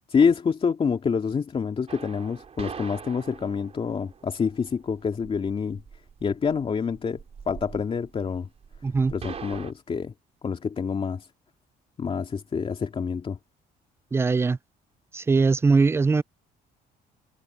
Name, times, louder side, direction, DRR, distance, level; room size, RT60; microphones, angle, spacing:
voice 1, 0.1-5.8 6.2-7.2 7.5-8.5 9.1-10.1 10.4-11.3 12.0-13.4, left 6 dB, 35° left, 2.6 m, -27 dB
sound 1, 1.9-9.7, right 6 dB, 35° right, 4.2 m, -43 dB
voice 2, 8.8-9.1 14.1-14.6 15.1-16.2, right 4 dB, 15° right, 0.4 m, -21 dB
cardioid pair, 110°, 17 cm